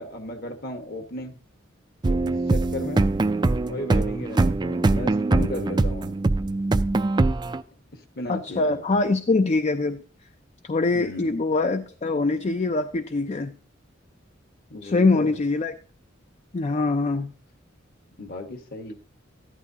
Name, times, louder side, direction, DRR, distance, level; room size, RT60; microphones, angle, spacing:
voice 1, 0.0-1.4 2.1-3.1 3.7-6.2 8.2-9.0 10.9-11.4 14.7-15.3 18.2-18.9, left 1 dB, 55° left, 6 dB, 1.4 m, -35 dB
sound 1, 2.0-7.6, right 2 dB, 25° right, 0.4 m, -22 dB
voice 2, 8.3-10.0 10.7-13.5 14.8-15.7 16.5-17.3, left 3 dB, 35° left, 8 dB, 0.5 m, -23 dB
14.0 x 11.0 x 2.8 m, 0.40 s
head